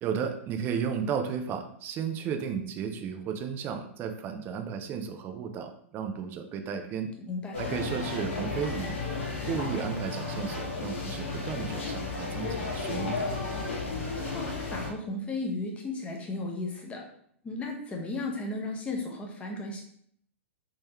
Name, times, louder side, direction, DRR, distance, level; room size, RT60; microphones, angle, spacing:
voice 1, 0.0-7.1 7.6-9.0 9.5-13.3, right 7 dB, 30° right, 6 dB, 0.5 m, -34 dB
voice 2, 7.3-7.6 14.3-17.0 17.4-19.8, left 2 dB, 15° left, 0 dB, 0.9 m, -35 dB
sound 1, 7.5-14.9, left 3 dB, 70° left, 1.2 m, -33 dB
3.6 x 3.1 x 3.0 m, 0.65 s
figure-of-eight pair, 105°, 7 cm